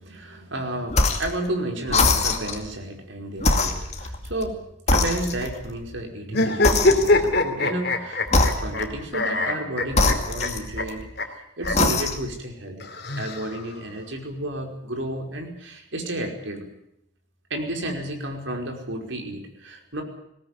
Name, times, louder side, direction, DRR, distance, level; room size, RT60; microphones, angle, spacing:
voice 1, 0.0-11.1 11.6-12.9 13.2-16.7 17.5-20.0, right 1 dB, 75° right, 3 dB, 5.1 m, -32 dB
sound 1, 0.9-1.4 1.9-2.7 3.4-4.5 4.9-5.7 6.6-7.4 8.3-9.0 9.9-11.0 11.6-12.4, left 3 dB, 35° left, 2.3 m, -23 dB
sound 2, 6.3-8.8 9.1-10.5 10.8-10.9 11.2-11.3 11.6-11.7 12.8-13.8, left 2 dB, 55° left, 3.0 m, -22 dB
20.5 x 17.5 x 9.8 m, 0.76 s
head